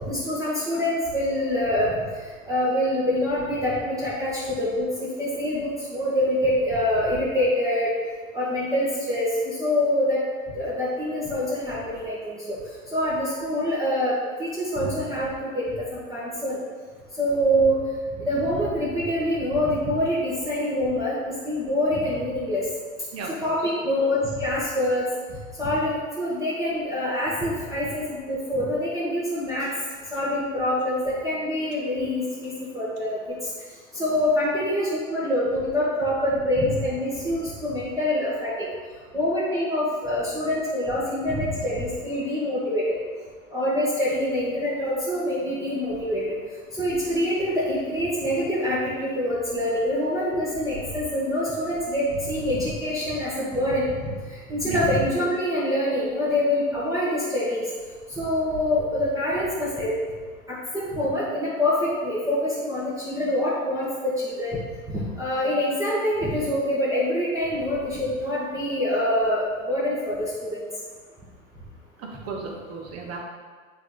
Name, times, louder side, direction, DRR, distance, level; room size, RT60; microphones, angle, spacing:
voice 1, 0.0-2.0 2.5-7.9 8.3-10.2 10.5-12.4 12.9-16.6 17.2-17.8 18.2-22.7 23.4-25.1 25.6-29.7 30.1-33.4 33.9-38.5 39.1-42.9 43.5-46.4 46.7-57.7 58.1-59.9 60.5-64.6 64.9-70.6, left 1 dB, 10° right, -9 dB, 1.4 m, -25 dB
voice 2, 23.1-23.5 54.6-54.8 72.0-73.2, right 4 dB, 35° right, -1 dB, 1.4 m, -35 dB
8.8 x 3.9 x 3.1 m, 1.5 s
hypercardioid pair, 100°, 41 cm